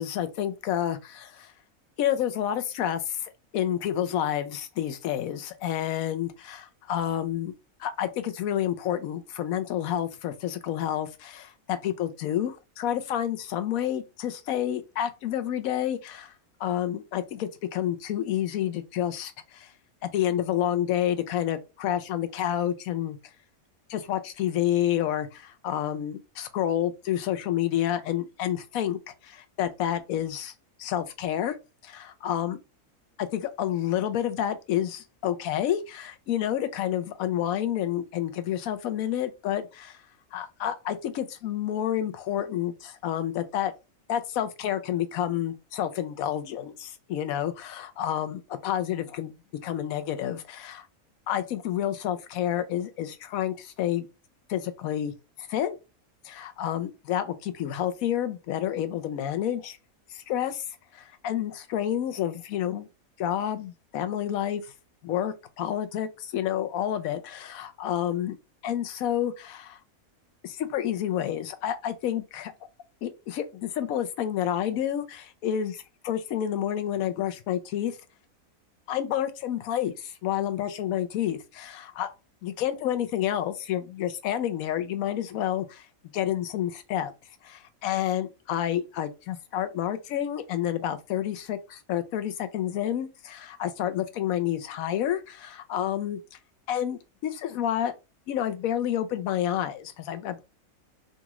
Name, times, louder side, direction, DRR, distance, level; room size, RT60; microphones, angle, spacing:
voice 1, 0.0-1.5 2.0-7.5 7.8-16.3 16.6-19.7 20.0-23.2 23.9-30.5 30.8-31.6 31.8-32.6 33.2-40.0 40.3-43.7 44.1-50.9 51.3-54.1 54.5-55.1 55.5-55.8 56.2-59.8 60.1-60.6 60.9-62.9 63.2-64.7 65.0-68.4 68.6-69.8 70.4-72.5 73.0-75.7 76.0-78.0 78.9-82.1 82.4-85.9 86.1-87.1 87.4-96.4 96.7-97.9 98.3-100.4, left 11 dB, 80° left, 1.0 m, -29 dB
4.0 x 2.4 x 2.9 m
omnidirectional pair, 1.5 m